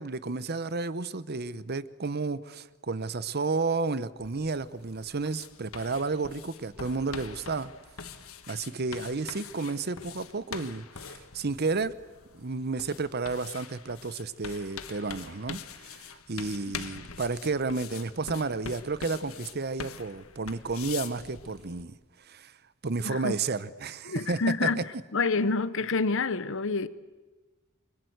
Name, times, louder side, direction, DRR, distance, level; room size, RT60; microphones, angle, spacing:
voice 1, 0.0-7.7 8.5-11.9 12.3-21.9 22.3-22.5 22.8-24.7, right 3 dB, 50° right, 0.9 m, -32 dB
sound 1, 4.2-21.8, left 6 dB, 80° left, 1.5 m, -44 dB
voice 2, 23.0-23.4 24.0-24.9 25.1-26.9, left 4 dB, 65° left, 1.1 m, -28 dB
29.5 x 23.5 x 8.0 m
head